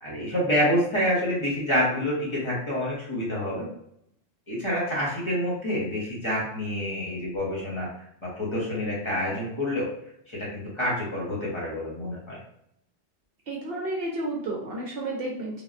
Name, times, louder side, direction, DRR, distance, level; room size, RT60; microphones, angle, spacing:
voice 1, 0.0-3.7 4.5-7.9 8.2-9.9 10.3-12.4, equal, 30° left, -7 dB, 0.8 m, -27 dB
voice 2, 13.5-15.6, right 2 dB, 60° right, -2 dB, 0.7 m, -31 dB
3.3 x 2.2 x 2.5 m, 0.74 s
omnidirectional pair, 1.3 m